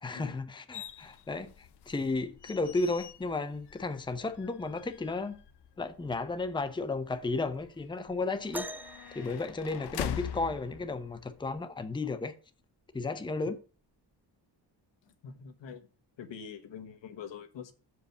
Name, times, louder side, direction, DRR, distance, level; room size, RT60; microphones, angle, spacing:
voice 1, 0.0-5.4 5.8-8.7 9.1-12.3 12.9-13.6, left 3 dB, 10° left, 0.7 m, -33 dB
sound 1, 0.7-11.6, left 10 dB, 65° left, 0.7 m, -45 dB
sound 2, 8.5-10.4 12.1-12.2 13.0-13.2 14.1-14.2, right 1 dB, 5° right, 0.3 m, -43 dB
voice 2, 15.0-15.9 16.2-17.7, left 7 dB, 85° left, 1.3 m, -45 dB
6.9 x 5.1 x 6.5 m
wide cardioid pair, 130°, 43 cm